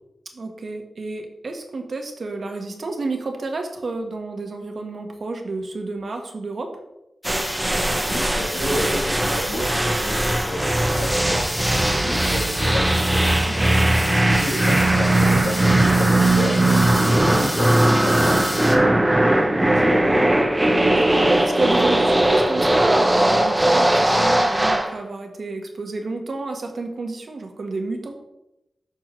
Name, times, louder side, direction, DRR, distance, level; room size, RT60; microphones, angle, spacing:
voice 1, 0.3-6.8 13.5-14.0 15.6-15.8 18.9-19.1 20.9-28.2, right 3 dB, 60° right, 4 dB, 1.2 m, -30 dB
sound 1, 7.2-18.8, equal, 5° left, 1.1 m, -30 dB
sound 2, 7.2-24.9, right 1 dB, 15° right, 0.8 m, -19 dB
voice 2, 8.0-13.4 14.1-16.6 17.0-20.3, left 1 dB, 85° left, -5 dB, 2.8 m, -31 dB
9.0 x 6.1 x 3.0 m, 0.91 s
wide cardioid pair, 85°, 0 cm